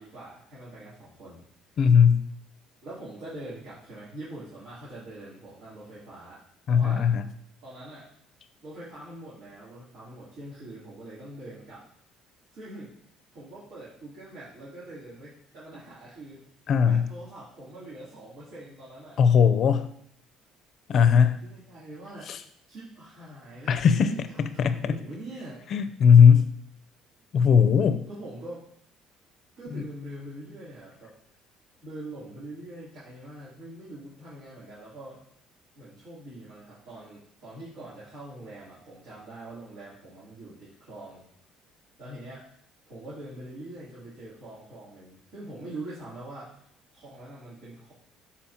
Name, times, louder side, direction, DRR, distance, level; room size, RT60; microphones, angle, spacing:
voice 1, 0.0-1.4 2.8-6.4 6.7-7.1 7.6-8.1 8.6-11.8 12.5-12.9 13.3-16.4 16.8-19.2 21.0-22.4 22.7-23.8 24.3-25.6 28.0-28.7 29.6-31.1 31.8-35.2 35.7-41.2 42.0-42.4 42.9-46.6 46.9-47.9, right 1 dB, 65° right, -11 dB, 3.3 m, -43 dB
voice 2, 1.8-2.2 6.7-7.2 16.7-17.0 19.2-19.8 20.9-21.3 22.3-22.4 23.7-24.9 25.7-26.5 27.3-28.0 29.7-29.8, left 7 dB, 55° left, 11 dB, 0.6 m, -19 dB
12.5 x 4.3 x 2.9 m, 0.67 s
supercardioid pair, 95°, 0 cm